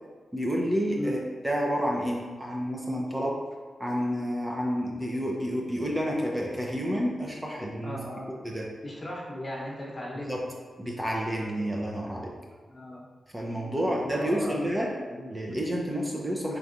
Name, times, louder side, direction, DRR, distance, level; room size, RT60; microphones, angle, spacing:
voice 1, 0.3-3.4 3.8-8.0 8.4-8.7 10.3-10.4 10.8-12.3 13.3-14.9 15.3-16.6, equal, 20° right, -2 dB, 0.6 m, -29 dB
voice 2, 7.8-8.4 8.8-10.4 11.9-12.0 12.7-13.0 13.6-15.5, left 1 dB, 40° left, -4 dB, 1.0 m, -38 dB
4.4 x 2.6 x 2.6 m, 1.5 s
cardioid pair, 50°, 0 cm